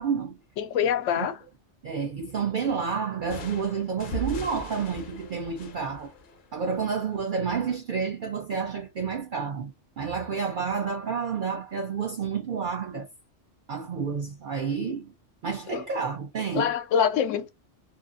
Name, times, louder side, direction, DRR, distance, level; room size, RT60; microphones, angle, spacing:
voice 1, 0.0-0.4 1.1-1.3 1.8-6.1 6.5-13.1 13.7-15.1 15.4-16.7, right 6 dB, 55° right, 0.6 m, -30 dB
voice 2, 0.6-1.4 15.7-15.8 16.5-17.5, left 8 dB, 90° left, 0.9 m, -25 dB
sound 1, 3.3-7.0, right 1 dB, 55° left, 0.7 m, -39 dB
2.5 x 2.4 x 2.4 m
omnidirectional pair, 1.2 m